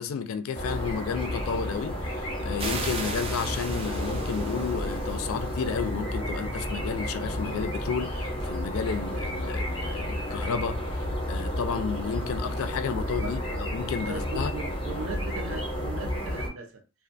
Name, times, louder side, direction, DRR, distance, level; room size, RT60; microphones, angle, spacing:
voice 1, 0.0-13.4 13.7-14.5, left 6 dB, 75° left, 0.3 m, -32 dB
sound 1, 0.5-16.5, equal, 25° left, 0.6 m, -31 dB
sound 2, 2.6-5.9, right 3 dB, 25° right, 0.4 m, -37 dB
voice 2, 13.2-13.6 14.1-16.8, right 3 dB, 70° right, 0.6 m, -38 dB
2.4 x 2.3 x 2.5 m
head